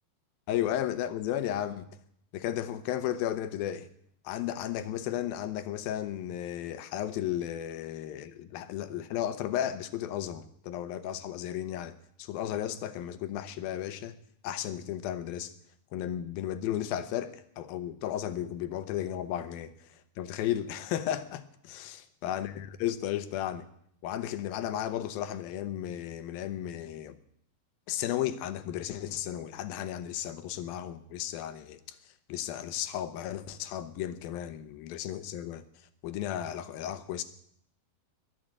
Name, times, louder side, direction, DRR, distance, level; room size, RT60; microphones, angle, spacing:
voice 1, 0.5-1.9 2.3-3.9 4.2-14.2 14.4-15.5 15.9-23.7 24.0-27.2 27.9-32.0 32.3-35.6 36.0-37.2, left 11 dB, 75° left, 2.7 m, -34 dB
21.5 x 7.7 x 8.7 m
omnidirectional pair, 4.3 m